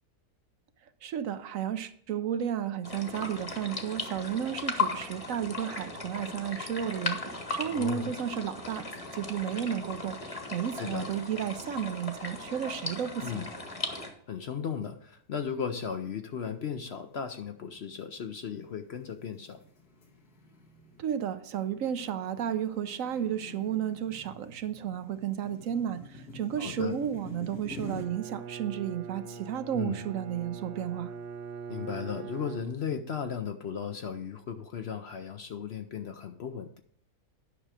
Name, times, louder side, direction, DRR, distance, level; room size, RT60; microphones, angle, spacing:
voice 1, 1.0-8.9 9.1-13.4 21.0-31.1, right 9 dB, 70° right, 12 dB, 1.0 m, -33 dB
sound 1, 2.8-14.1, left 3 dB, 25° left, 1.2 m, -37 dB
voice 2, 7.7-8.1 10.8-11.1 13.2-13.5 14.3-19.6 26.6-26.9 29.7-30.1 31.7-36.8, left 7 dB, 55° left, 7 dB, 0.8 m, -36 dB
sound 2, 11.9-12.1 12.5-12.6 13.3-13.8 14.3-14.6 15.2-28.0, left 2 dB, 85° left, 2.4 m, -48 dB
Bowed string instrument, 27.8-33.2, right 6 dB, 85° right, 0.5 m, -42 dB
10.0 x 6.0 x 4.9 m, 0.63 s
omnidirectional pair, 1.6 m